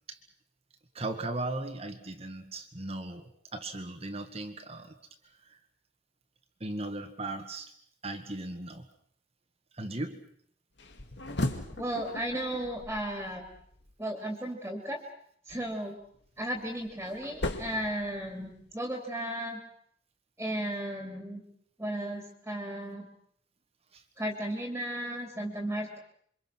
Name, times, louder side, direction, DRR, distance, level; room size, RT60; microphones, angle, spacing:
voice 1, 0.9-5.0 5.2-5.6 6.6-7.7 8.0-8.9 9.7-10.3 15.5-15.6 23.9-24.0, right 2 dB, 35° right, 5 dB, 1.8 m, -37 dB
sound 1, 10.8-13.9 16.1-18.7, left 1 dB, 75° left, 2.3 m, -38 dB
voice 2, 11.8-13.5 14.0-15.0 15.5-16.0 16.4-19.6 20.4-21.4 21.8-23.1 24.2-26.0, right 1 dB, 10° right, 2 dB, 3.0 m, -35 dB
28.0 x 24.5 x 6.2 m, 0.63 s
head